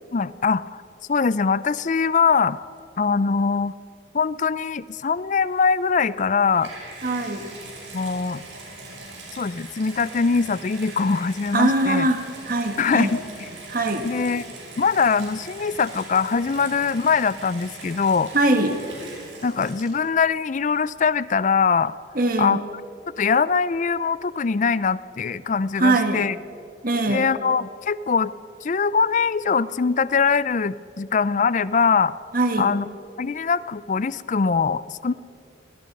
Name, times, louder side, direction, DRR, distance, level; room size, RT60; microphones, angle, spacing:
voice 1, 0.1-0.6 1.1-2.6 3.0-3.7 4.1-6.7 7.9-8.4 9.4-12.1 12.8-13.2 14.0-14.4 14.8-18.3 19.4-21.9 22.4-22.6 23.2-26.4 27.1-28.3 28.6-32.1 32.6-32.9 33.2-35.1, left 5 dB, 40° left, 18 dB, 0.4 m, -22 dB
Water tap faucet / Bathtub (filling or washing), 6.4-20.2 21.0-21.1, right 2 dB, 80° right, 5.8 m, -41 dB
voice 2, 7.0-7.5 11.5-13.2 13.7-14.1 18.3-18.8 22.1-22.6 25.8-26.3 26.8-27.3 32.3-32.8, right 2 dB, 45° right, 6 dB, 1.6 m, -22 dB
26.0 x 18.5 x 5.4 m, 2.7 s
head